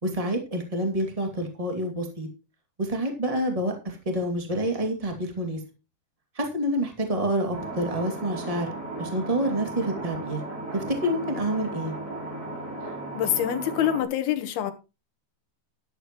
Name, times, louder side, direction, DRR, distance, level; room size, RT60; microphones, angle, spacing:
voice 1, 0.0-2.3 2.8-5.6 6.3-8.7 9.0-10.4 10.7-11.9, right 1 dB, 40° right, 0.5 m, -28 dB
sound 1, 7.5-14.0, right 2 dB, 20° right, 3.3 m, -36 dB
voice 2, 13.1-14.7, left 10 dB, 65° left, 3.0 m, -25 dB
13.0 x 12.0 x 3.1 m
omnidirectional pair, 5.4 m